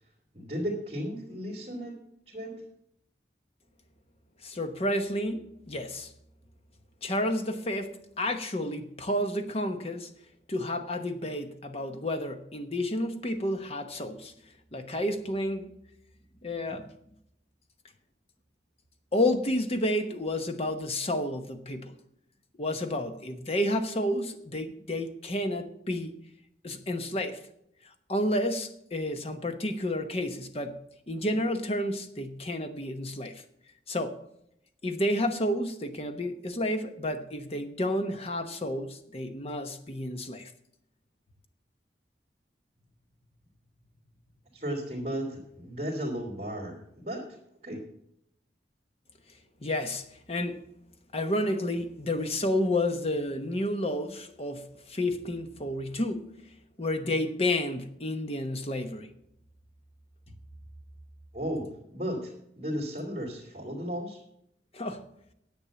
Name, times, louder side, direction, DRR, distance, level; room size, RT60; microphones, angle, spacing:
voice 1, 0.3-2.0 2.3-2.5 44.5-47.4 47.6-47.8 61.3-64.2, equal, 35° right, 2.6 m, -35 dB
voice 2, 4.4-6.1 7.0-10.1 10.5-14.3 14.7-15.8 16.4-16.9 19.1-21.9 22.6-26.1 26.6-27.4 28.1-30.8 31.1-33.4 33.9-34.2 34.8-40.5 49.6-50.6 51.1-56.4 56.8-59.1 64.7-65.0, left 1 dB, 35° left, 1.0 m, -30 dB
10.0 x 8.1 x 7.0 m
head